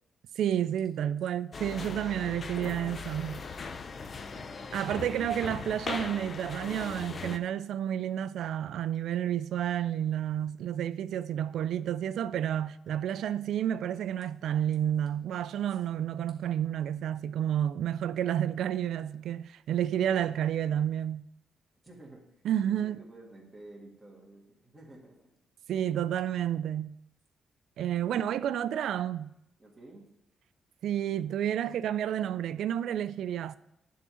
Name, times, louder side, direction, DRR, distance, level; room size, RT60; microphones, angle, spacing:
voice 1, 0.4-3.4 4.7-21.2 22.4-23.0 25.7-26.9 27.8-29.3 30.8-33.6, right 10 dB, 75° right, 0.3 m, -30 dB
sound 1, 1.5-7.4, left 4 dB, 35° left, 0.5 m, -39 dB
voice 2, 4.2-6.2 15.7-15.8 21.8-22.2 22.6-25.3 28.0-28.6 29.6-30.1, right 2 dB, 5° right, 2.1 m, -52 dB
10.5 x 3.7 x 6.9 m
cardioid pair, 135°, 0 cm